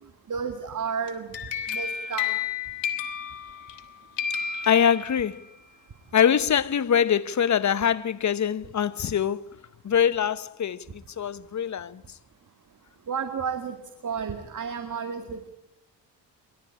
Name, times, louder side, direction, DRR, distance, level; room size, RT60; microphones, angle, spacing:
voice 1, 0.3-1.4 1.7-2.4 13.1-13.8 14.0-15.5, right 6 dB, 45° right, 2.1 m, -32 dB
sound 1, 1.1-3.9 4.2-5.5, left 8 dB, 75° left, 2.4 m, -31 dB
voice 2, 4.7-5.4 6.1-9.4 9.8-10.8 11.2-12.0, left 8 dB, 40° left, 1.0 m, -23 dB
25.5 x 12.0 x 9.9 m
supercardioid pair, 60°, 44 cm